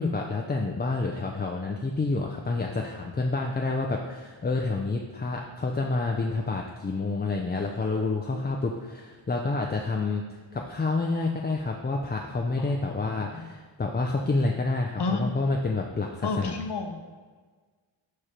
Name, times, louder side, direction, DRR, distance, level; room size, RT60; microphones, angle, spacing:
voice 1, 0.0-16.6, left 3 dB, 20° left, 1 dB, 0.4 m, -28 dB
voice 2, 12.6-12.9 13.2-13.5 15.0-15.3 16.2-17.0, left 3 dB, 55° left, 4 dB, 0.9 m, -31 dB
5.0 x 4.9 x 4.3 m, 1.4 s
wide cardioid pair, 75°, 48 cm